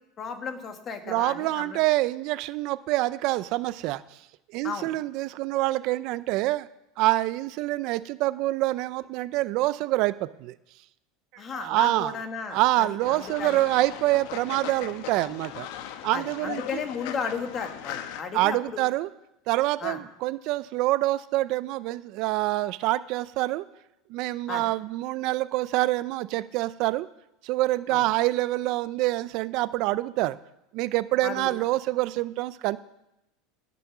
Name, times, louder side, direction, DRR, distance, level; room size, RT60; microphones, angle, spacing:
voice 1, 0.2-1.8 4.6-4.9 11.4-13.6 16.1-18.8 19.8-20.0 24.5-24.7 27.9-28.0 31.2-31.5, left 6 dB, 30° left, 6 dB, 1.7 m, -34 dB
voice 2, 1.1-4.0 4.5-6.7 7.0-10.5 11.5-12.2 12.5-15.7 16.0-16.8 18.3-19.1 19.5-23.6 24.1-27.1 27.4-30.4 30.7-32.8, right 17 dB, 55° right, 16 dB, 0.4 m, -26 dB
Fowl, 13.0-18.2, left 11 dB, 70° left, 1.1 m, -39 dB
17.0 x 6.9 x 6.0 m, 0.88 s
supercardioid pair, 140°, 0 cm